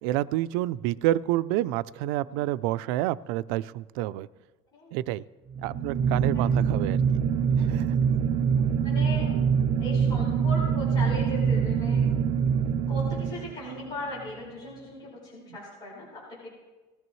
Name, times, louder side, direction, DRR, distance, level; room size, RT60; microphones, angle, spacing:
voice 1, 0.0-4.3 4.9-5.2 5.6-7.0 7.6-7.9, right 15 dB, 90° right, 17 dB, 0.4 m, -28 dB
sound 1, 5.5-13.9, right 7 dB, 50° right, 0.6 m, -24 dB
voice 2, 8.8-9.4 9.8-12.0 12.9-16.5, left 2 dB, 35° left, -5 dB, 5.0 m, -38 dB
19.5 x 14.0 x 3.1 m, 1.2 s
cardioid pair, 175°, 13 cm